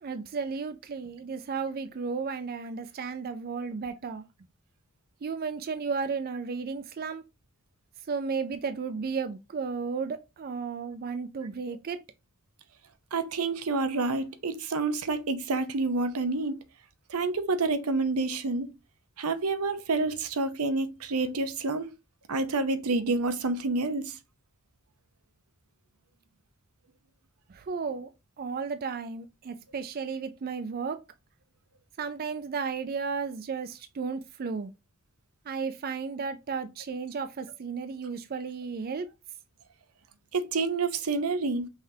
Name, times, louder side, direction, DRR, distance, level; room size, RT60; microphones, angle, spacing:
voice 1, 0.0-4.2 5.2-7.2 8.1-12.0 27.5-28.1 28.4-31.0 32.0-34.7 35.5-39.1, right 5 dB, 45° right, 0.4 m, -34 dB
voice 2, 13.1-16.5 17.1-18.7 19.2-21.9 22.3-24.2 40.3-41.7, right 3 dB, 85° right, 0.7 m, -28 dB
5.6 x 3.4 x 2.8 m
head